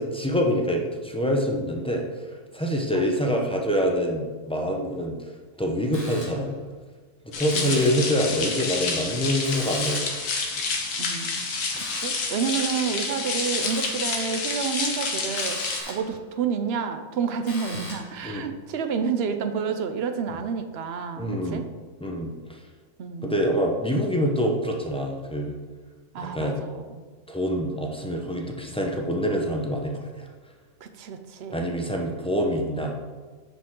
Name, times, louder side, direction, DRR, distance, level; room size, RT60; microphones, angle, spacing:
voice 1, 0.0-2.1 2.5-5.2 5.6-6.6 7.2-10.1 11.7-11.8 18.2-18.5 21.2-21.6 22.0-22.6 23.2-25.5 26.3-26.6 27.3-30.3 31.5-32.9, equal, 5° left, 0 dB, 0.4 m, -26 dB
sound 1, 5.9-6.6 7.5-8.2 9.4-10.3 11.8-12.3 13.6-14.1 15.4-16.2 17.5-18.2, left 1 dB, 50° left, 2.0 m, -40 dB
sound 2, 7.3-15.8, left 4 dB, 90° left, 1.6 m, -29 dB
voice 2, 11.0-11.5 11.8-15.6 15.9-21.7 23.0-23.4 26.1-27.0 30.8-31.8, right 6 dB, 60° right, 8 dB, 0.7 m, -30 dB
9.8 x 5.1 x 3.7 m, 1.4 s
omnidirectional pair, 1.6 m